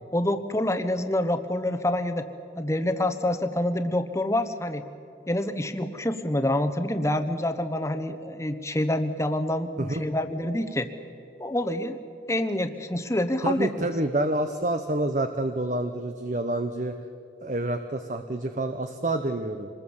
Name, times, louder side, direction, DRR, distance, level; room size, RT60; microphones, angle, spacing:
voice 1, 0.1-2.3 2.6-4.8 5.3-10.9 11.4-12.0 12.3-13.9, left 1 dB, 15° left, 9 dB, 1.0 m, -27 dB
voice 2, 13.4-16.9 17.4-19.7, right 1 dB, 45° right, 7 dB, 0.9 m, -28 dB
26.0 x 20.5 x 7.2 m, 2.5 s
head